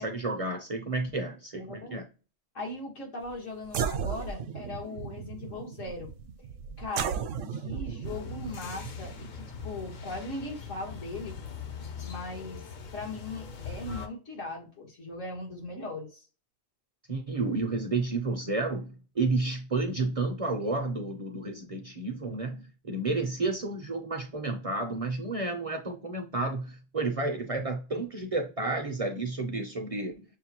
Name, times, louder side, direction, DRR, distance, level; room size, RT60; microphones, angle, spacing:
voice 1, 0.0-2.0 17.1-30.2, right 3 dB, 40° right, 0.5 m, -31 dB
voice 2, 1.6-2.0 2.6-6.1 6.6-7.2 7.5-11.4 12.0-12.6 12.9-16.3, left 2 dB, 75° left, 1.8 m, -39 dB
sound 1, 3.3-3.4 3.6-10.5, right 7 dB, 75° right, 0.9 m, -36 dB
sound 2, 8.0-14.1, left 6 dB, 50° left, 0.6 m, -41 dB
6.4 x 2.2 x 2.8 m
omnidirectional pair, 1.3 m